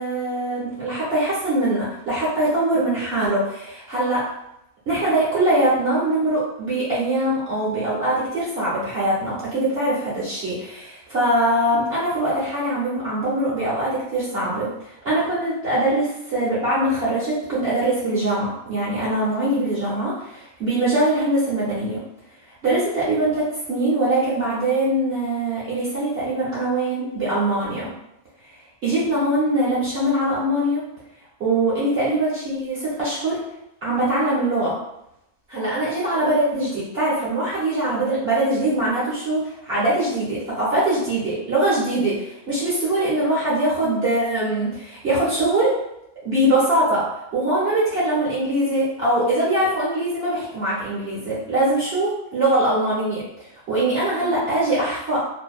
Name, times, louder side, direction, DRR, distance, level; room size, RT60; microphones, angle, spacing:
voice 1, 0.0-4.3 4.9-22.0 22.6-27.9 28.8-30.8 31.4-33.4 33.8-34.8 35.5-45.8 46.2-55.2, right 1 dB, 55° right, -8 dB, 0.8 m, -22 dB
2.5 x 2.1 x 2.3 m, 0.83 s
omnidirectional pair, 1.6 m